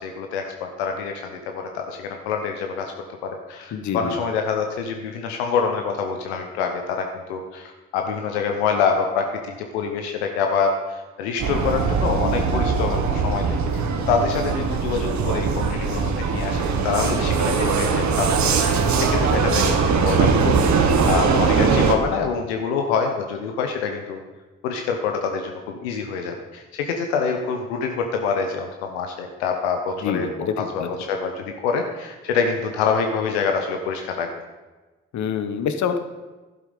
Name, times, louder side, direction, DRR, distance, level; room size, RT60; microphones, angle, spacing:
voice 1, 0.0-2.9 3.2-24.2 24.6-30.3 30.6-34.3, left 5 dB, 90° left, 4 dB, 0.8 m, -26 dB
voice 2, 3.7-4.1 30.0-30.9 35.1-36.0, left 7 dB, 65° left, 9 dB, 1.1 m, -26 dB
Vehicle, 11.4-22.0, right 5 dB, 60° right, 1.3 m, -21 dB
11.0 x 7.6 x 5.2 m, 1.2 s
hypercardioid pair, 45°, 32 cm